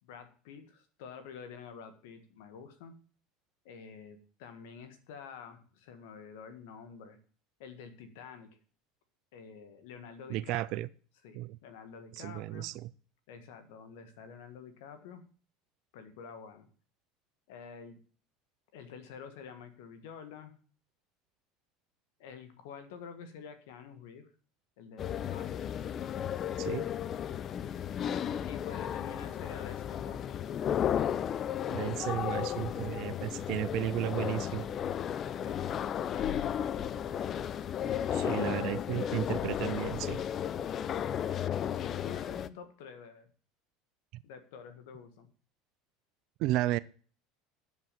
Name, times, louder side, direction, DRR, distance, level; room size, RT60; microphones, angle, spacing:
voice 1, 0.0-3.0 3.6-7.2 7.6-8.6 9.3-10.8 11.2-12.7 13.3-15.2 15.9-16.7 17.5-18.0 18.7-20.5 22.2-24.3 24.8-25.7 28.5-30.5 35.4-37.2 38.1-38.7 41.3-43.3 44.2-45.3, left 6 dB, 75° left, 10 dB, 1.6 m, -48 dB
voice 2, 10.3-10.9 11.3-11.6 12.2-12.9 26.6-26.8 31.7-34.7 38.1-40.2 46.4-46.8, right 15 dB, 60° right, 16 dB, 0.4 m, -33 dB
sound 1, 25.0-42.5, left 9 dB, 40° left, 0.5 m, -34 dB
8.0 x 7.0 x 7.5 m, 0.42 s
supercardioid pair, 100°, 0 cm